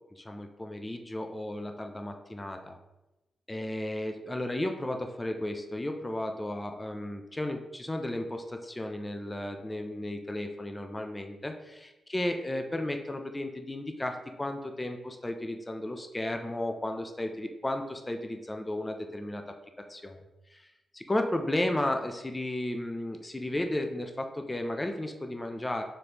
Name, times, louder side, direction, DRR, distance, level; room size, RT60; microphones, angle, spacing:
voice 1, 0.3-2.8 3.5-11.7 12.1-19.4 19.9-20.2 20.5-20.7 20.9-25.8, left 1 dB, 15° left, 4 dB, 0.4 m, -34 dB
4.3 x 3.3 x 2.9 m, 1.0 s
cardioid pair, 100°, 0 cm